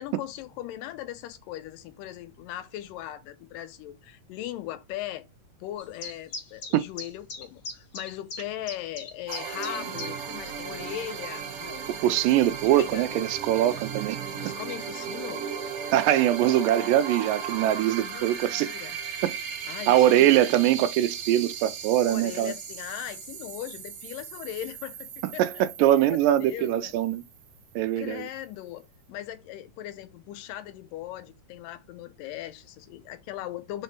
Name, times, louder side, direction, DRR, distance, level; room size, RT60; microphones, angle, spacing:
voice 1, 0.0-5.2 5.6-11.8 12.3-13.3 14.3-15.5 18.0-19.0 19.7-20.7 22.1-26.9 28.0-33.8, left 13 dB, 85° left, 2.3 m, -39 dB
sound 1, 5.8-10.4 10.6-10.7 11.3-11.4, left 3 dB, 40° left, 1.7 m, -38 dB
sound 2, 9.3-27.7, right 7 dB, 65° right, 1.9 m, -37 dB
voice 2, 12.0-14.2 14.4-14.5 15.9-18.7 19.2-19.4 19.9-22.5 25.4-27.2 27.8-28.3, right 12 dB, 85° right, 2.2 m, -22 dB
5.3 x 3.3 x 2.9 m
omnidirectional pair, 3.9 m